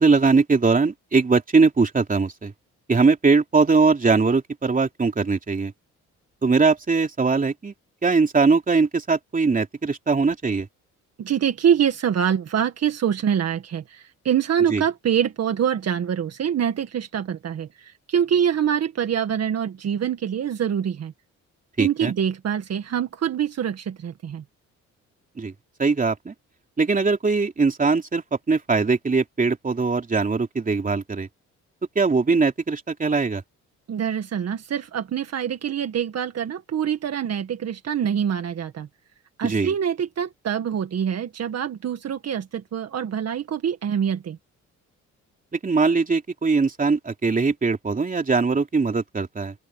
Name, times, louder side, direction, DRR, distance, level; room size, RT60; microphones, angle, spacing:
voice 1, 0.0-2.5 2.9-5.7 6.4-7.7 8.0-10.7 14.7-14.8 21.8-22.1 25.4-25.5 25.8-26.3 26.8-31.3 31.9-33.4 39.4-39.7 45.5-49.5, right 4 dB, 25° right, 3.3 m, -21 dB
voice 2, 11.2-21.1 21.8-24.4 33.9-38.9 39.4-44.4, right 8 dB, 55° right, 1.9 m, -25 dB
open air
cardioid pair, 90°, 30 cm